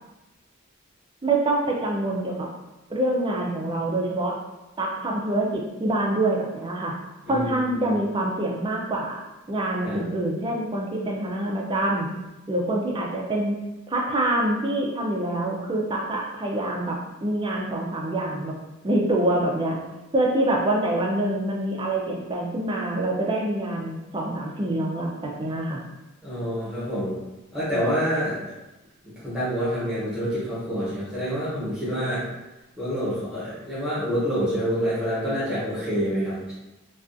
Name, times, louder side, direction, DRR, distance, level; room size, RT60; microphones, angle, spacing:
voice 1, 1.2-2.5 2.9-4.4 4.8-7.0 7.3-9.2 9.5-12.1 12.5-13.6 13.9-18.5 18.8-19.8 20.1-25.8, right 1 dB, 20° right, -1 dB, 0.3 m, -25 dB
voice 2, 7.3-7.9 9.8-10.0 26.2-27.2 27.5-28.5 29.0-32.2 32.8-36.5, equal, 5° right, -11 dB, 1.0 m, -27 dB
2.4 x 2.3 x 2.5 m, 1.0 s
head